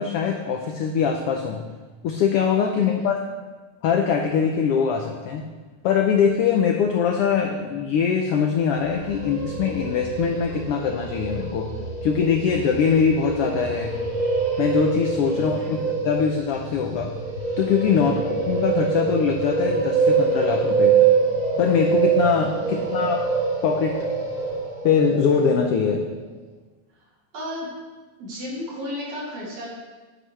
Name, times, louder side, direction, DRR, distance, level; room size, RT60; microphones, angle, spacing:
voice 1, 0.0-1.6 2.0-3.2 3.8-5.4 5.8-11.7 12.0-13.9 14.6-17.1 17.6-21.0 21.6-23.2 23.6-23.9 24.8-26.0, left 6 dB, 80° left, 2 dB, 1.3 m, -22 dB
sound 1, 8.7-25.7, right 5 dB, 45° right, 3.4 m, -25 dB
voice 2, 15.3-15.7 17.9-18.3 22.6-22.7 27.3-27.7 28.2-29.7, left 1 dB, 70° right, -5 dB, 3.8 m, -34 dB
9.9 x 9.8 x 3.2 m, 1.3 s
omnidirectional pair, 3.4 m